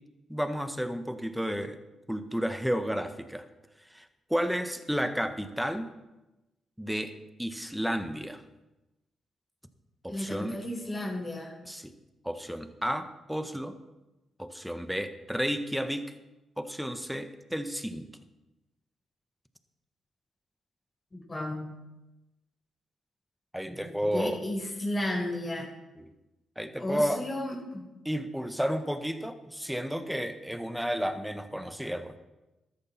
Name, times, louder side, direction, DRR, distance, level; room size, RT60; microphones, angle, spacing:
voice 1, 0.3-1.8 2.1-3.4 3.9-4.0 4.3-5.9 6.8-7.1 7.4-8.4 10.0-10.6 11.6-11.9 12.2-13.7 14.4-16.0 16.6-18.1 23.5-24.4 26.0-26.1 26.6-27.2 28.0-32.1, equal, ahead, 9 dB, 1.5 m, -32 dB
voice 2, 10.1-11.5 21.1-21.7 23.6-25.7 26.8-27.9, left 1 dB, 30° left, -2 dB, 4.9 m, -33 dB
13.5 x 13.5 x 4.3 m, 1.0 s
hypercardioid pair, 40°, 0 cm